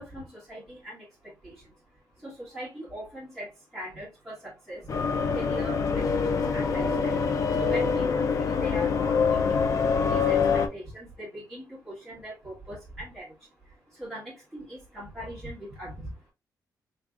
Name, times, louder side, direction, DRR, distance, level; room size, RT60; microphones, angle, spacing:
voice 1, 0.0-7.2 7.5-9.8 10.1-16.3, equal, ahead, 1.5 m, -41 dB
sound 1, 4.9-10.7, left 5 dB, 50° left, 0.6 m, -25 dB
4.1 x 3.2 x 2.4 m
wide cardioid pair, 145°, 7 cm